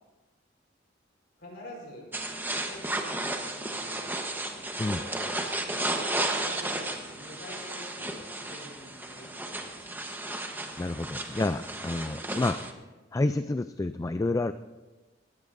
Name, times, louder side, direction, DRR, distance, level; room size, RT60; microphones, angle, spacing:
voice 1, 1.4-2.1 2.6-4.2 5.8-10.4, equal, 65° left, -1 dB, 4.5 m, -47 dB
sound 1, 2.1-12.7, right 2 dB, 10° right, 1.0 m, -33 dB
voice 2, 10.8-12.6 13.1-14.5, left 2 dB, 15° left, 11 dB, 0.3 m, -29 dB
19.5 x 15.5 x 2.6 m, 1.2 s
head